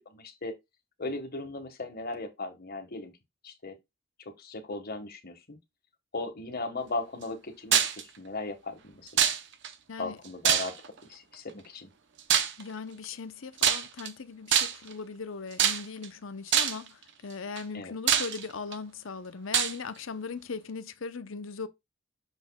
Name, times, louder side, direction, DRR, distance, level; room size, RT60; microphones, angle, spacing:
voice 1, 0.0-0.5 1.0-3.1 3.4-3.7 4.2-5.6 6.1-7.8 8.2-9.3 10.0-10.8 11.1-11.9 17.7-17.9, left 2 dB, 45° left, 1.5 m, -37 dB
sound 1, 7.7-8.0 9.2-9.7 10.4-11.0 12.3-12.6 13.6-14.1 14.5-14.9 15.6-16.1 16.5-16.9 17.6-17.7 18.1-18.7 19.5-19.8, right 8 dB, 60° right, 0.8 m, -24 dB
voice 2, 12.6-21.7, left 4 dB, 65° left, 0.8 m, -39 dB
6.8 x 6.3 x 2.3 m
head